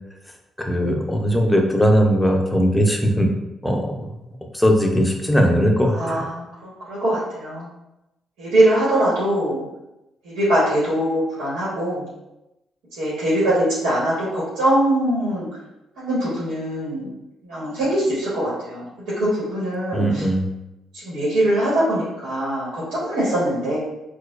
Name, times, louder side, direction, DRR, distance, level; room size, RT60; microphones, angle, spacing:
voice 1, 0.6-3.3 3.6-4.1 4.5-6.3 19.9-20.5, equal, 5° left, 1 dB, 0.6 m, -19 dB
voice 2, 5.9-7.7 8.4-9.6 10.2-12.0 13.0-15.5 16.0-17.1 17.4-18.8 19.2-20.2 20.9-23.8, right 1 dB, 90° right, -8 dB, 1.3 m, -22 dB
4.2 x 2.3 x 2.4 m, 0.92 s
cardioid pair, 90°, 0 cm